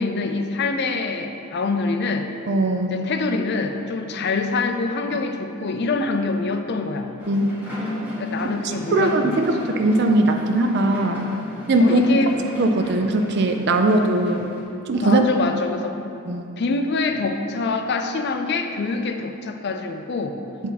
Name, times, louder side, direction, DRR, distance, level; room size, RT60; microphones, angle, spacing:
voice 1, 0.0-2.3 2.9-7.1 8.2-9.5 11.8-12.3 15.0-16.0 16.6-20.4, left 3 dB, 50° left, 6 dB, 0.4 m, -25 dB
voice 2, 2.5-3.0 7.3-7.5 8.6-11.2 11.7-12.0 12.6-14.5 14.9-15.2 16.3-16.4, right 2 dB, 50° right, 5 dB, 0.4 m, -20 dB
sound 1, 7.2-14.6, equal, 10° right, 1.6 m, -34 dB
8.3 x 4.5 x 4.1 m, 2.7 s
head